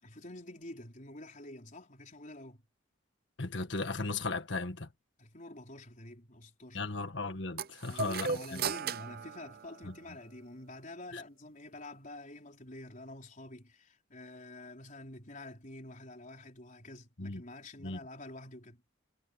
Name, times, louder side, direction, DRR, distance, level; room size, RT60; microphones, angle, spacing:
voice 1, 0.0-2.6 5.2-6.8 7.8-18.8, left 1 dB, 40° left, 4.5 m, -48 dB
voice 2, 3.4-4.9 6.7-8.6 9.8-9.9 11.1-11.2 17.2-17.4 17.8-18.0, left 3 dB, 65° left, 1.7 m, -36 dB
sound 1, 7.6-10.3, right 6 dB, 50° right, 0.6 m, -37 dB
head